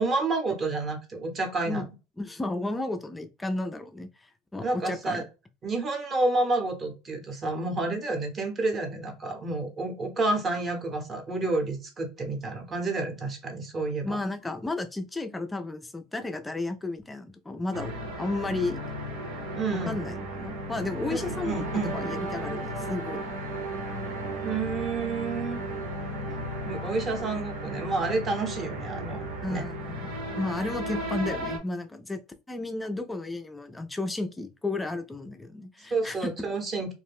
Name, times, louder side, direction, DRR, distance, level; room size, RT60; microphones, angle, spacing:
voice 1, 0.0-1.8 4.6-5.2 5.6-14.2 19.5-20.1 21.1-21.9 24.4-25.6 26.6-29.2 29.5-29.7 35.9-36.9, right 3 dB, 25° right, 0.7 m, -29 dB
voice 2, 2.2-5.2 14.0-17.9 18.2-18.8 19.7-21.6 21.9-23.3 29.4-30.0 30.4-32.2 32.5-36.3, left 2 dB, 10° left, 0.3 m, -33 dB
sound 1, 17.7-31.6, right 1 dB, 80° right, 1.0 m, -34 dB
2.5 x 2.1 x 3.4 m
supercardioid pair, 140°, 0 cm